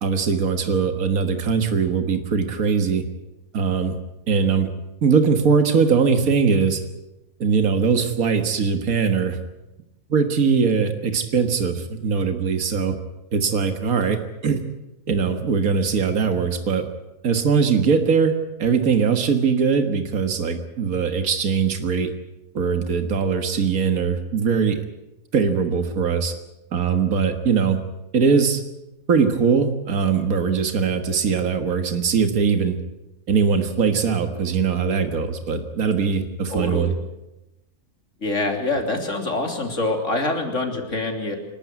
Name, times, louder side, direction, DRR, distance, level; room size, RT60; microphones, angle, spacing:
voice 1, 0.0-3.0 3.5-4.0 4.3-4.7 5.0-6.8 7.4-9.4 10.1-13.0 13.3-14.6 15.1-16.9 17.2-18.3 18.6-22.1 22.5-24.8 25.3-26.3 26.7-27.8 28.1-28.6 29.1-32.8 33.3-36.9, right 6 dB, 80° right, 7 dB, 2.0 m, -21 dB
voice 2, 36.5-37.0 38.2-41.4, left 2 dB, 60° left, 3 dB, 3.5 m, -25 dB
27.5 x 12.0 x 9.5 m, 0.97 s
omnidirectional pair, 1.5 m